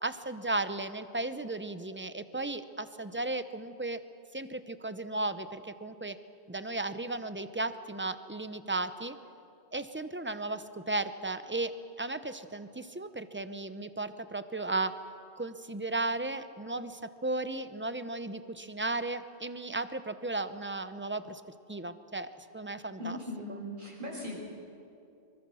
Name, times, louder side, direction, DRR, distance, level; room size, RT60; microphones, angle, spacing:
voice 1, 0.0-4.0 4.3-6.2 6.5-9.2 9.7-11.7 12.0-15.0 15.4-21.4 21.7-23.2, right 2 dB, 15° right, 11 dB, 0.7 m, -35 dB
voice 2, 23.0-24.4, left 1 dB, 50° right, -2 dB, 6.0 m, -39 dB
24.5 x 24.0 x 6.3 m, 2.6 s
omnidirectional pair, 1.1 m